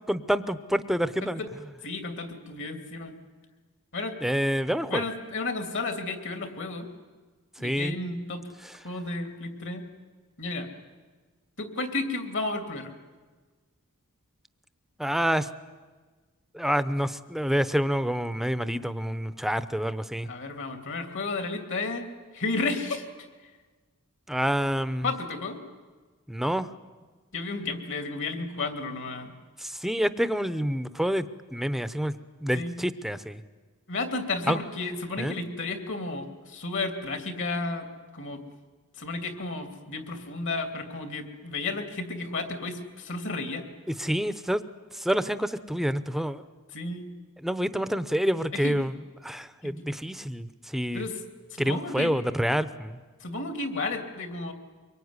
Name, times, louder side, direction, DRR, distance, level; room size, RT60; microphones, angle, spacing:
voice 1, 0.1-1.4 4.2-5.0 7.6-7.9 15.0-15.5 16.5-20.3 24.3-25.1 26.3-26.7 29.6-31.3 31.5-32.1 32.4-33.4 34.5-34.6 35.2-35.4 43.9-44.6 44.9-46.4 47.4-49.0 49.2-51.1 51.6-53.0, equal, ahead, 13 dB, 0.8 m, -27 dB
voice 2, 1.8-3.1 3.9-4.2 4.9-6.9 7.6-8.5 8.8-9.8 10.4-10.7 11.6-12.9 20.3-22.1 22.3-23.1 25.0-25.6 27.3-29.3 32.5-32.8 33.9-38.4 39.0-43.7 46.7-47.1 48.5-48.8 49.6-49.8 50.9-51.2 51.5-52.2 53.2-54.5, left 3 dB, 60° left, 6 dB, 2.9 m, -32 dB
24.0 x 23.0 x 9.7 m, 1.4 s
head